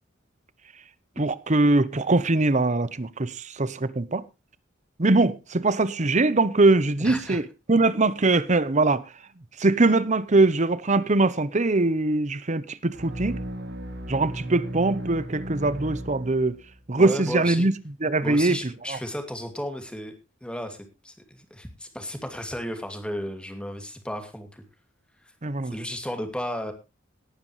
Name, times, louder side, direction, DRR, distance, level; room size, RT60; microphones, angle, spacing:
voice 1, 1.2-4.2 5.0-9.0 9.6-13.4 14.1-16.6 16.9-17.7 18.0-18.6 18.9-19.0 25.4-25.7, right 2 dB, 35° right, 0.9 m, -22 dB
voice 2, 7.0-7.4 17.0-17.7 18.2-20.1 20.4-20.8 21.0-24.6 25.6-26.7, equal, 5° left, 2.4 m, -34 dB
sound 1, 12.9-16.8, right 1 dB, 55° right, 2.3 m, -35 dB
18.5 x 9.6 x 3.1 m
head